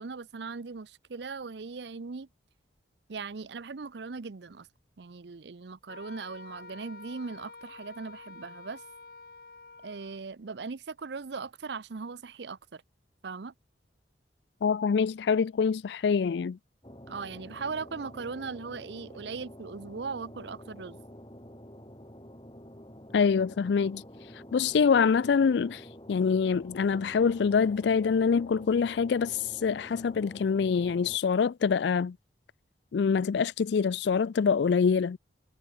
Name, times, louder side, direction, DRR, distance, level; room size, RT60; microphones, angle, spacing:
voice 1, 0.0-2.3 3.1-4.7 5.0-8.8 9.8-12.8 13.2-13.5 17.1-21.0, right 4 dB, 70° right, 0.6 m, -39 dB
Wind instrument woodwind instrument, 5.9-10.3, left 3 dB, 55° left, 6.9 m, -48 dB
voice 2, 14.6-16.6 23.1-24.0 24.3-32.2 32.9-35.2, left 6 dB, 70° left, 0.4 m, -25 dB
sound 1, 16.8-31.2, equal, 25° left, 6.8 m, -48 dB
head